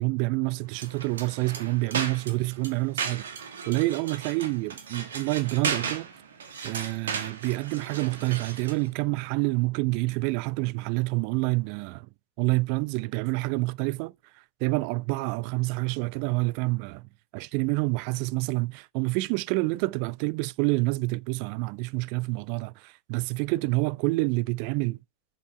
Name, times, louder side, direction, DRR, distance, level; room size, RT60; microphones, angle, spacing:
voice 1, 0.0-6.1 6.6-12.1 12.4-14.1 14.6-25.0, right 24 dB, 45° right, 0.5 m, -28 dB
sound 1, 0.7-8.9, right 6 dB, 65° right, 1.5 m, -35 dB
7.2 x 5.9 x 6.7 m
figure-of-eight pair, 90°, 0 cm